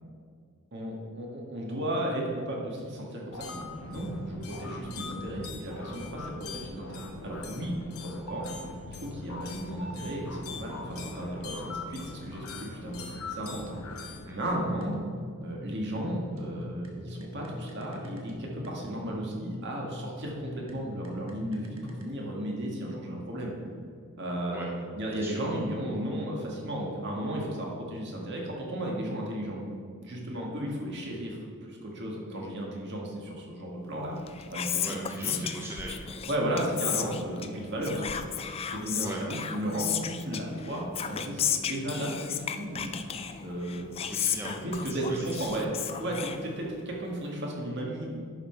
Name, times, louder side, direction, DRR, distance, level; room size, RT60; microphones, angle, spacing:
voice 1, 0.7-7.7 8.0-8.5 8.9-13.0 13.3-13.8 14.0-14.9 15.4-23.5 24.2-24.7 24.9-29.6 30.0-34.1 34.5-35.4 36.3-38.3 38.7-42.9 43.4-43.9 44.4-48.2, right 1 dB, 50° right, -2 dB, 1.7 m, -34 dB
sound 1, 3.3-14.4, left 3 dB, 75° left, 1.0 m, -41 dB
sound 2, 14.4-22.0, left 1 dB, 70° right, 1.3 m, -43 dB
Whispering, 34.1-47.0, left 8 dB, 25° left, 0.3 m, -34 dB
voice 2, 34.8-36.3 39.0-39.4 44.1-44.6 44.9-45.4, right 2 dB, 10° right, -2 dB, 0.6 m, -40 dB
10.5 x 5.7 x 4.5 m, 2.1 s
head